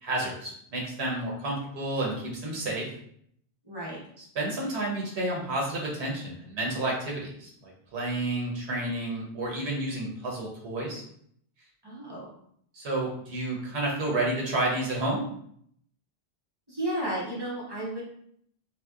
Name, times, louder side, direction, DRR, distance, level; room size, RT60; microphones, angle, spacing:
voice 1, 0.0-2.9 4.3-11.0 12.7-15.3, right 2 dB, 85° right, -3 dB, 1.0 m, -30 dB
voice 2, 3.6-4.0 11.8-12.3 16.7-18.0, right 1 dB, 30° right, -5 dB, 0.6 m, -33 dB
2.7 x 2.1 x 2.3 m, 0.67 s
omnidirectional pair, 1.1 m